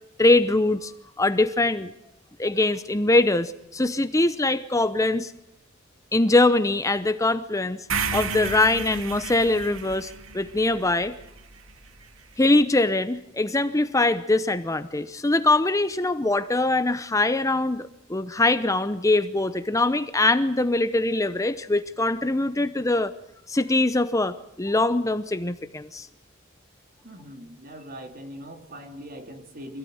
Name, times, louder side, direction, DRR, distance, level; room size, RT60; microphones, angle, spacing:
voice 1, 0.2-1.9 2.4-5.3 6.1-7.9 8.1-11.1 12.4-23.1 23.5-26.1, left 2 dB, 15° left, 11 dB, 0.8 m, -22 dB
sound 1, 7.9-12.0, right 5 dB, 80° right, 2.0 m, -33 dB
voice 2, 27.0-29.8, equal, 45° right, 6 dB, 3.2 m, -41 dB
25.5 x 17.0 x 9.5 m, 0.85 s
head